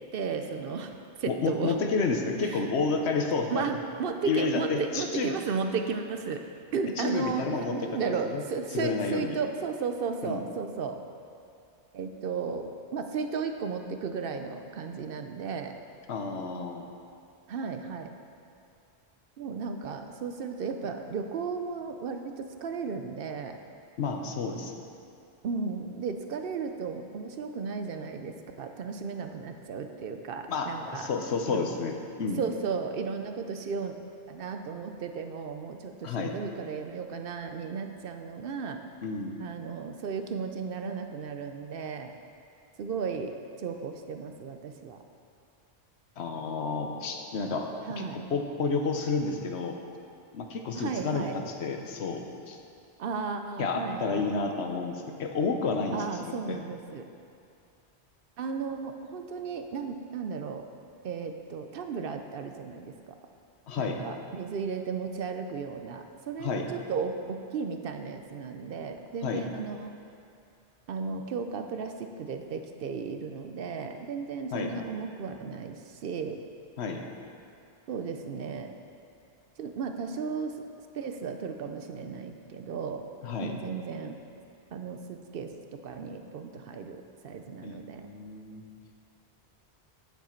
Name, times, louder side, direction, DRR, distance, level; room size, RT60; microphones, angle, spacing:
voice 1, 0.1-0.9 1.2-1.8 2.5-2.6 3.5-6.4 6.7-11.0 11.9-15.8 17.5-18.1 19.4-23.6 25.4-31.1 31.5-31.6 32.4-34.0 34.3-38.8 39.4-42.1 42.8-43.3 43.6-45.0 47.9-48.2 50.8-51.4 53.0-54.3 55.9-57.1 58.4-60.7 61.0-62.9 63.8-69.9 70.9-76.4 77.9-78.7 79.6-80.6 80.9-83.1 83.4-84.2 84.7-88.1, right 5 dB, 65° right, 6 dB, 0.7 m, -34 dB
voice 2, 1.3-3.6 4.2-5.4 7.0-8.4 8.7-9.4 10.2-10.4 16.1-16.9 24.0-24.7 30.5-32.4 36.0-36.4 39.0-39.4 46.2-47.7 48.0-49.8 50.3-52.6 53.6-56.6 63.7-64.0 66.4-66.7 69.2-69.4 74.5-74.7 76.8-77.0 83.2-83.5 87.6-88.6, left 4 dB, 80° left, 3 dB, 1.1 m, -31 dB
9.2 x 7.3 x 4.4 m, 2.5 s
omnidirectional pair, 1.1 m